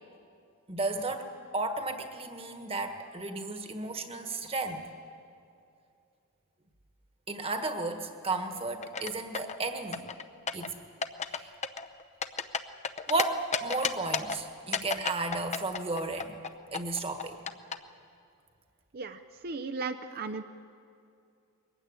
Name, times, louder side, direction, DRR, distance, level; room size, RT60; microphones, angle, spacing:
voice 1, 0.7-4.9 7.3-10.0 10.5-10.8 11.3-11.5 13.1-16.4 16.7-17.4, right 2 dB, 25° right, 6 dB, 1.5 m, -33 dB
sound 1, 8.8-9.6 9.9-10.7 11.0-11.4 11.6-13.2 13.5-14.4 14.7-17.7, left 5 dB, 30° left, 0.7 m, -31 dB
voice 2, 18.9-20.4, right 4 dB, 45° right, 8 dB, 0.6 m, -36 dB
22.0 x 15.5 x 9.6 m, 2.5 s
head